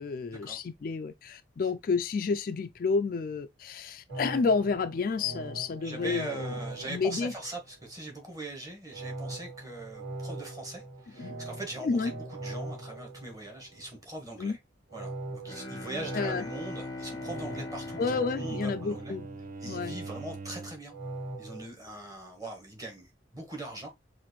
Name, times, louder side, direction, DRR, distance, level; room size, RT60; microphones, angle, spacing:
voice 1, 0.0-6.5 6.9-7.3 11.2-11.4 11.8-12.1 14.4-14.6 16.1-16.5 18.0-19.3 19.7-20.0, left 4 dB, 45° left, 0.3 m, -30 dB
sound 1, 4.1-8.0 8.9-14.0 14.9-20.0 20.9-21.7, right 2 dB, 60° right, 2.5 m, -41 dB
voice 2, 5.8-14.6 14.9-18.0 18.4-19.1 19.6-20.9 21.4-23.9, right 2 dB, 20° right, 1.4 m, -41 dB
Bowed string instrument, 15.4-19.7, left 2 dB, 20° left, 0.6 m, -41 dB
Bowed string instrument 2, 17.3-21.0, right 3 dB, 45° right, 0.5 m, -44 dB
5.7 x 2.6 x 3.1 m
head